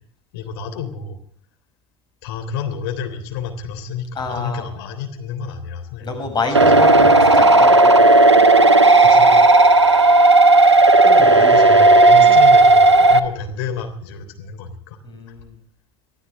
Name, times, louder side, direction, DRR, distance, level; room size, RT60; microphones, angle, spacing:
voice 1, 0.3-1.2 2.2-6.3 9.0-9.3 9.7-9.8 11.2-15.0, left 6 dB, 65° left, 6 dB, 3.4 m, -30 dB
voice 2, 4.2-4.6 6.0-8.0 11.0-11.6 12.2-12.4 15.0-15.5, left 3 dB, 30° left, 5 dB, 6.9 m, -27 dB
sound 1, 6.5-13.2, right 2 dB, 85° right, 1.1 m, -11 dB
24.5 x 14.0 x 3.5 m, 0.62 s
figure-of-eight pair, 70°, 14 cm